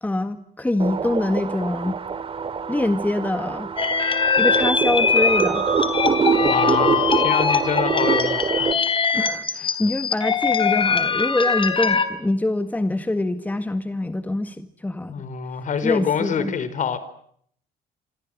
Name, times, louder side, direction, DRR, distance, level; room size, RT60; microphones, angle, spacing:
voice 1, 0.0-2.0 2.7-3.7 4.4-5.7 9.1-15.2 15.8-16.5, left 2 dB, 10° left, 1.8 m, -24 dB
sound 1, 0.8-8.7, right 6 dB, 35° right, 2.5 m, -25 dB
sound 2, 3.8-12.1, left 5 dB, 30° left, 3.6 m, -22 dB
voice 2, 6.4-8.8 9.7-9.8 15.1-17.0, left 7 dB, 50° left, 4.8 m, -26 dB
27.5 x 27.0 x 7.9 m
cardioid pair, 110°, 17 cm